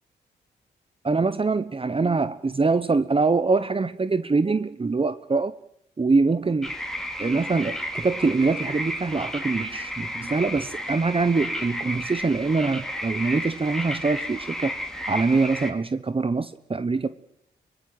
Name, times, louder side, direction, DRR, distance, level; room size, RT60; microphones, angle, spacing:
voice 1, 1.0-5.5 6.0-6.7 7.2-14.7 15.1-17.1, right 4 dB, 30° right, 14 dB, 1.1 m, -24 dB
sound 1, 6.6-15.7, equal, 5° left, 4.3 m, -33 dB
24.0 x 17.0 x 8.0 m, 0.76 s
supercardioid pair, 55°, 19 cm